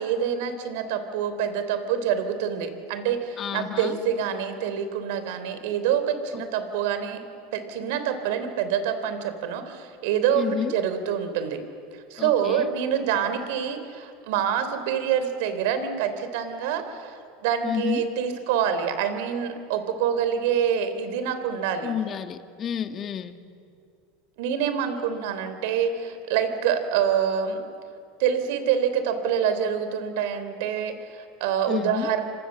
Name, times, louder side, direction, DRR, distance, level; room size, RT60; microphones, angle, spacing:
voice 1, 0.0-7.2 7.5-11.6 12.1-17.1 17.4-21.9 24.4-27.6 28.2-32.2, right 8 dB, 70° right, 10 dB, 3.4 m, -26 dB
voice 2, 3.4-4.0 6.3-6.4 10.3-10.8 12.2-12.7 17.6-18.0 21.8-23.4 31.7-32.1, left 8 dB, 35° left, 8 dB, 1.7 m, -30 dB
29.0 x 26.0 x 7.5 m, 2.3 s
supercardioid pair, 115°, 0 cm